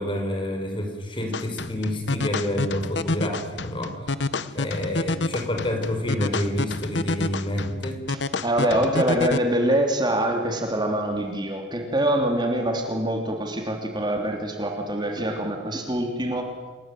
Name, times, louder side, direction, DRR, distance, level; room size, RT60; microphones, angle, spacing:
voice 1, 0.0-4.2 4.5-8.0, equal, 30° left, 4 dB, 5.1 m, -28 dB
sound 1, 1.3-9.4, left 3 dB, 70° left, 1.0 m, -29 dB
voice 2, 8.1-16.5, right 1 dB, 25° right, 3 dB, 3.2 m, -25 dB
28.5 x 20.0 x 9.3 m, 1.3 s
head